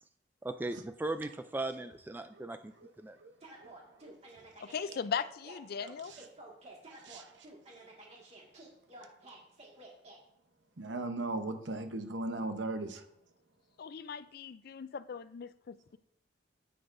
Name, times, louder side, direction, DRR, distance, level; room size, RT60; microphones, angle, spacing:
voice 1, 0.4-2.7 3.0-3.2, right 2 dB, 10° right, 9 dB, 0.3 m, -38 dB
sound 1, 3.4-10.2, right 1 dB, 35° right, 1.9 m, -52 dB
voice 2, 4.6-6.1 13.8-16.0, left 6 dB, 55° left, 15 dB, 0.4 m, -39 dB
voice 3, 10.8-13.0, right 2 dB, 85° right, 6 dB, 0.9 m, -37 dB
9.8 x 8.7 x 2.6 m, 0.76 s
head